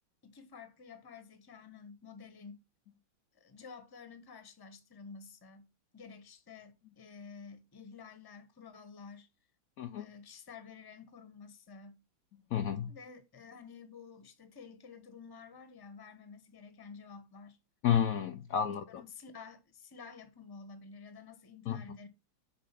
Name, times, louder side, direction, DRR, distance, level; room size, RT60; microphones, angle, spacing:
voice 1, 0.2-2.6 3.3-9.3 10.0-12.0 12.9-17.6 19.0-22.1, left 5 dB, 20° left, 0.6 m, -51 dB
voice 2, 12.5-12.9 17.8-19.0 21.7-21.8, left 9 dB, 90° left, 0.7 m, -31 dB
8.6 x 3.7 x 5.7 m
omnidirectional pair, 2.3 m